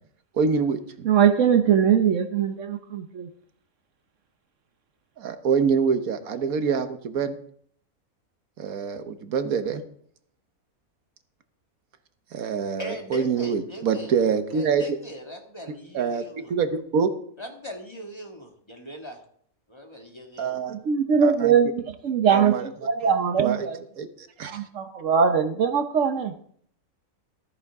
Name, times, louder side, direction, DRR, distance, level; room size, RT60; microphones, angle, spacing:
voice 1, 0.3-1.1 5.2-7.3 8.6-9.8 12.3-14.8 15.9-16.2 16.5-17.1 20.4-20.7 21.2-21.5 22.3-22.7 23.4-23.7 24.0-24.6, right 6 dB, 85° right, 9 dB, 1.5 m, -25 dB
voice 2, 1.0-3.3 20.7-23.8 24.5-26.3, right 7 dB, 65° right, 8 dB, 1.1 m, -21 dB
voice 3, 12.8-14.2 14.5-16.5 17.4-19.2 19.7-20.6, equal, 20° left, 2 dB, 1.8 m, -39 dB
14.0 x 13.5 x 3.6 m, 0.62 s
omnidirectional pair, 1.5 m